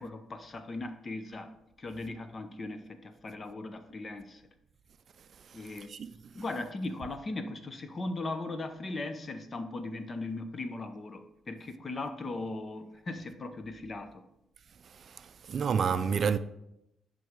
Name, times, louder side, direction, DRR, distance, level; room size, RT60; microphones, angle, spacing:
voice 1, 0.0-4.4 5.5-5.9 6.3-14.3, left 2 dB, 35° left, 0.8 m, -38 dB
voice 2, 15.1-16.4, right 6 dB, 55° right, 0.4 m, -29 dB
7.6 x 5.3 x 3.6 m
cardioid pair, 90°, 0 cm